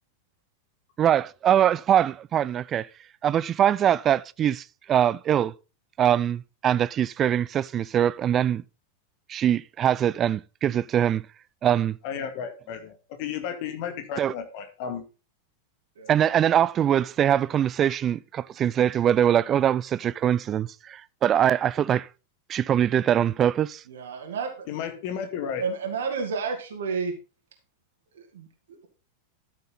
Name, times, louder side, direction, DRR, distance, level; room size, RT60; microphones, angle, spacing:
voice 1, 1.0-2.9 3.2-5.5 6.0-8.6 9.3-11.2 11.6-12.0 14.2-14.3 16.1-22.1 22.5-23.8, right 10 dB, 25° right, 0.4 m, -23 dB
voice 2, 12.0-15.0 24.7-25.6, left 8 dB, 45° left, 2.0 m, -33 dB
voice 3, 23.9-24.5 25.6-27.1 28.3-28.5, right 5 dB, 60° right, 2.3 m, -30 dB
13.0 x 6.6 x 4.0 m
figure-of-eight pair, 90°, 0 cm